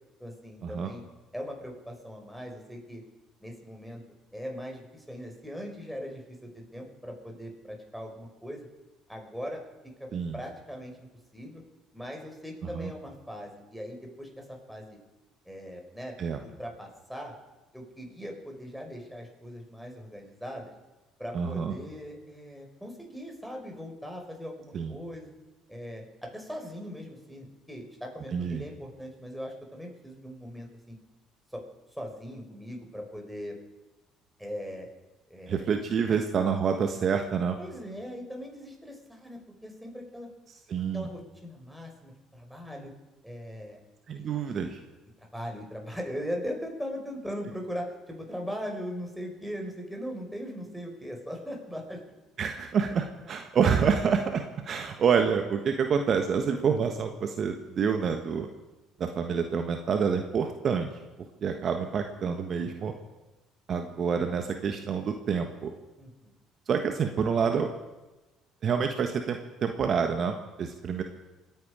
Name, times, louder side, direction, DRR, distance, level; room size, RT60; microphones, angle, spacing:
voice 1, 0.2-1.0 1.3-3.0 3.4-4.0 4.3-8.7 9.1-9.6 10.0-11.1 11.3-11.6 11.9-15.0 15.4-16.2 16.6-17.3 17.7-20.7 21.2-25.3 25.7-31.0 31.5-31.6 31.9-33.6 34.4-34.9 35.3-35.7 36.1-36.2 37.6-40.3 40.9-42.9 43.2-43.8 44.2-44.6 45.2-52.0 66.0-66.3, equal, ahead, 1 dB, 5.0 m, -40 dB
voice 2, 21.3-21.7 24.7-24.9 28.3-28.6 35.5-37.6 40.7-41.1 44.1-44.8 52.4-58.5 59.0-60.9 61.4-62.9 63.7-65.7 66.7-67.7 68.6-71.0, right 6 dB, 50° right, 5 dB, 1.3 m, -27 dB
27.0 x 9.6 x 5.0 m, 1.1 s
hypercardioid pair, 60°, 0 cm